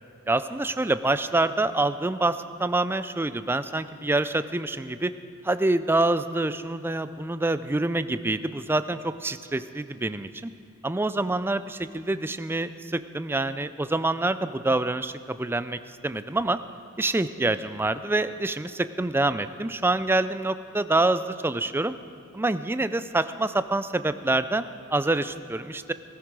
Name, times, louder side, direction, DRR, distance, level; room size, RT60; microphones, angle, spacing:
voice 1, 0.3-5.1 5.4-10.5 10.8-16.6 17.0-21.9 22.3-25.9, right 2 dB, 10° right, 12 dB, 0.4 m, -26 dB
17.0 x 14.5 x 4.7 m, 2.8 s
head